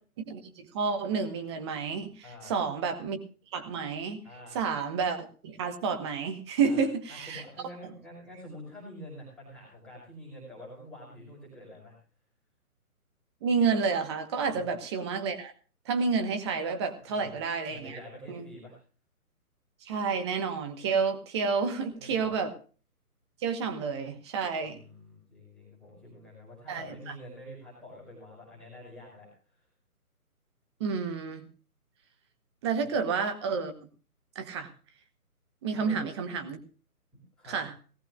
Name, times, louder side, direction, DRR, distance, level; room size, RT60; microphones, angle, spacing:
voice 1, 0.3-3.2 3.5-4.2 4.5-7.4 13.4-15.5 15.8-18.0 18.3-18.4 19.8-22.5 23.4-24.8 26.7-27.1 30.8-31.4 32.6-33.7 34.3-34.7 35.6-36.6 37.5-37.7, right 5 dB, 20° right, 7 dB, 1.2 m, -30 dB
voice 2, 2.2-2.6 4.2-4.6 6.6-12.0 14.5-14.8 17.0-17.4 17.7-18.8 22.0-22.4 24.6-29.3 35.7-36.0 37.1-37.6, equal, ahead, -6 dB, 5.2 m, -47 dB
18.5 x 15.0 x 2.4 m, 0.38 s
figure-of-eight pair, 150°, 45 cm